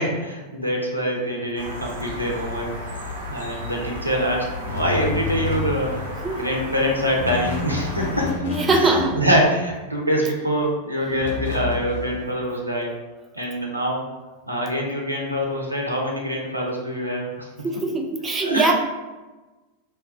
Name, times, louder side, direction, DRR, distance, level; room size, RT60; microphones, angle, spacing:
voice 1, 0.0-2.7 3.3-6.0 6.4-8.3 8.6-12.9 13.3-14.0 14.5-17.5 17.7-17.8 18.4-18.7, equal, 90° right, -2 dB, 0.6 m, -24 dB
sound 1, 1.6-8.3, left 1 dB, 70° right, 0.9 m, -34 dB
sound 2, 4.7-6.2 7.1-9.7 11.1-12.3, left 4 dB, 65° left, 0.6 m, -30 dB
voice 2, 8.4-9.2 17.6-18.7, right 3 dB, 20° right, 1 dB, 0.4 m, -21 dB
2.9 x 2.2 x 3.5 m, 1.2 s
figure-of-eight pair, 90°, 0 cm